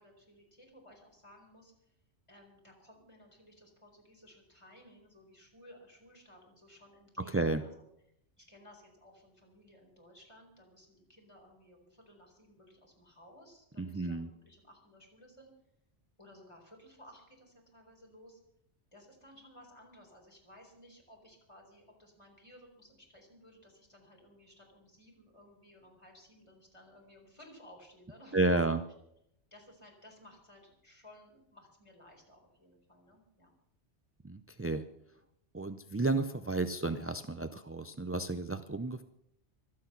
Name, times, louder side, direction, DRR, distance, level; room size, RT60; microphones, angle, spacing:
voice 1, 0.0-1.9 2.3-7.7 8.4-15.5 16.2-18.4 18.9-28.7 29.5-33.5, left 1 dB, 25° left, 1 dB, 4.4 m, -58 dB
voice 2, 7.2-7.6 13.8-14.3 28.3-28.8 34.2-34.8 35.5-39.0, right 2 dB, 20° right, 9 dB, 0.3 m, -32 dB
24.5 x 8.6 x 5.8 m, 0.78 s
omnidirectional pair, 1.2 m